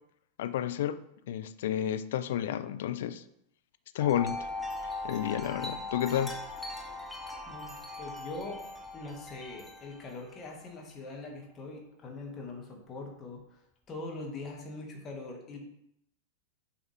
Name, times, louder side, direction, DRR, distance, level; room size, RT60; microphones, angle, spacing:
voice 1, 0.4-1.0 1.3-3.2 3.9-4.5 5.0-6.4, left 10 dB, 55° left, 0.4 m, -31 dB
Wind chime, 4.0-10.5, left 2 dB, ahead, 0.9 m, -40 dB
voice 2, 7.5-8.7 8.9-13.6 13.9-15.6, left 2 dB, 25° left, 1.8 m, -42 dB
7.5 x 4.8 x 3.5 m
figure-of-eight pair, 90°, 0 cm